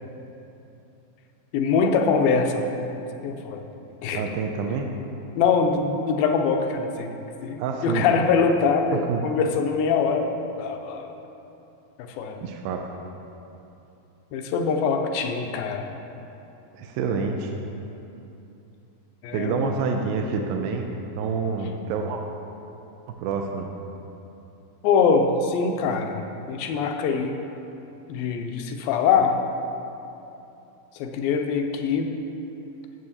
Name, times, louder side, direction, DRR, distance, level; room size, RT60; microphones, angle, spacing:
voice 1, 1.5-2.8 3.2-3.6 4.0-4.2 5.4-7.1 7.4-11.2 12.2-12.5 14.3-15.9 19.2-19.7 24.8-26.2 26.5-27.4 28.1-29.3 31.0-32.1, left 5 dB, 85° left, 4 dB, 2.3 m, -23 dB
voice 2, 4.1-4.9 7.6-8.1 8.9-9.2 12.4-12.8 16.7-17.5 19.3-20.9 21.2-22.2 23.1-23.7, right 5 dB, 85° right, 3 dB, 2.4 m, -27 dB
14.0 x 7.7 x 2.8 m, 2.9 s
omnidirectional pair, 4.2 m